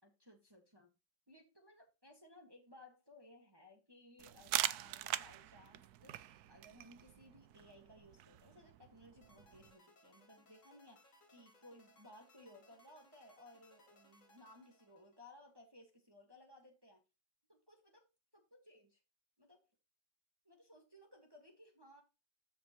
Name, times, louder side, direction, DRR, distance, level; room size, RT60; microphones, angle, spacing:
voice 1, 0.0-0.9 1.3-17.0 17.5-18.0 18.3-19.0 19.4-19.7 20.4-22.0, left 1 dB, 15° right, 1.5 m, -61 dB
sound 1, 4.2-9.7, right 13 dB, 70° right, 0.9 m, -43 dB
sound 2, 9.2-15.5, left 1 dB, 45° left, 2.1 m, -67 dB
13.5 x 5.2 x 3.0 m
omnidirectional pair, 2.1 m